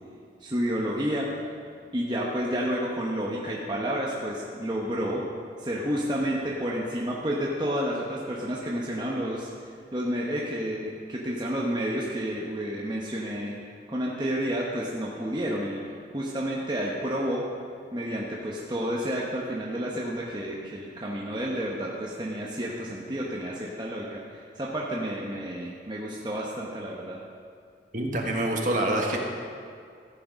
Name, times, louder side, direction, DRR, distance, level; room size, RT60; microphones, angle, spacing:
voice 1, 0.4-1.3 1.9-5.3 5.6-9.5 9.9-13.6 13.9-15.8 16.1-17.5 17.9-24.2 24.6-27.2, equal, 25° right, -4 dB, 1.0 m, -30 dB
voice 2, 27.9-29.2, right 1 dB, 45° right, 0 dB, 1.5 m, -26 dB
14.5 x 8.7 x 5.2 m, 2.2 s
head